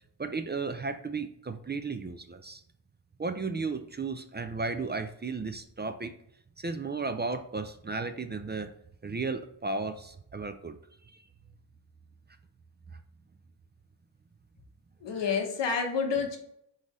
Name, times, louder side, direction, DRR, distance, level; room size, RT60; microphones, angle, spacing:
voice 1, 0.2-2.6 3.2-6.1 6.6-8.7 9.0-10.8 11.1-11.2, right 4 dB, 25° right, 7 dB, 0.4 m, -34 dB
voice 2, 15.0-16.4, left 5 dB, 85° left, 4 dB, 0.9 m, -29 dB
4.0 x 3.8 x 3.0 m, 0.73 s
cardioid pair, 60°, 42 cm